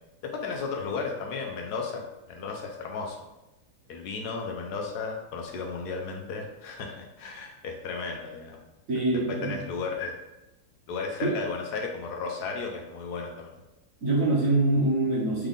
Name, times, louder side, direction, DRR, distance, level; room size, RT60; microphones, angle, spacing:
voice 1, 0.3-2.0 2.3-3.2 3.9-8.6 9.4-10.1 10.9-13.5, left 4 dB, 70° left, 1 dB, 1.0 m, -34 dB
voice 2, 8.9-9.6 11.2-11.4 14.0-15.5, right 2 dB, 55° right, -4 dB, 1.1 m, -24 dB
3.6 x 3.5 x 3.7 m, 0.98 s
omnidirectional pair, 2.0 m